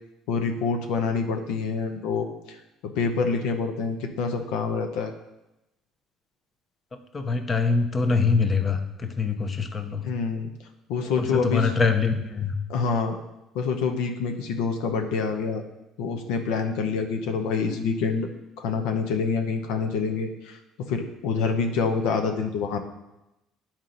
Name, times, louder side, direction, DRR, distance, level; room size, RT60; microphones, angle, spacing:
voice 1, 0.3-2.6 2.8-5.1 10.0-10.5 10.9-11.7 12.7-13.1 13.5-15.6 16.0-18.3 18.6-20.6 20.9-22.8, left 5 dB, 85° left, 5 dB, 0.8 m, -26 dB
voice 2, 7.1-10.0 11.2-12.5, left 4 dB, 30° left, 7 dB, 0.7 m, -24 dB
9.4 x 4.4 x 3.9 m, 0.94 s
cardioid pair, 115°, 0 cm